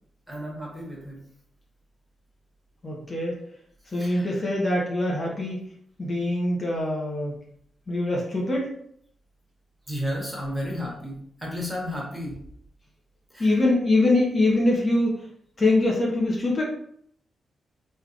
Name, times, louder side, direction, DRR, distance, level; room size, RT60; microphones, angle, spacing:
voice 1, 0.3-1.2 3.9-4.5 9.9-12.4 13.3-13.6, equal, ahead, -4 dB, 1.4 m, -33 dB
voice 2, 2.8-3.4 3.9-5.6 6.0-7.4 7.9-8.7 13.4-15.2 15.6-16.6, left 2 dB, 40° left, -4 dB, 0.9 m, -23 dB
3.4 x 2.7 x 2.5 m, 0.67 s
cardioid pair, 75°, 0 cm